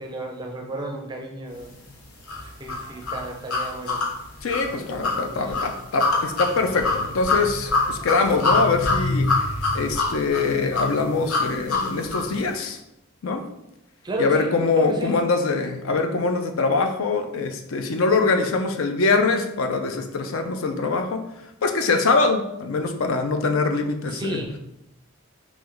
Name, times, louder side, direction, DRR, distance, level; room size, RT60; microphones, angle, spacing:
voice 1, 0.0-1.7 2.4-4.0 4.7-5.6 14.0-15.3 24.1-24.6, right 1 dB, 20° right, 2 dB, 0.4 m, -33 dB
sound 1, 2.3-12.3, left 3 dB, 85° left, 1.0 m, -25 dB
voice 2, 4.4-9.3 9.7-12.8 13.2-13.4 14.2-21.3 21.6-24.4, left 3 dB, 70° left, 6 dB, 0.5 m, -23 dB
3.2 x 3.0 x 3.8 m, 0.84 s
head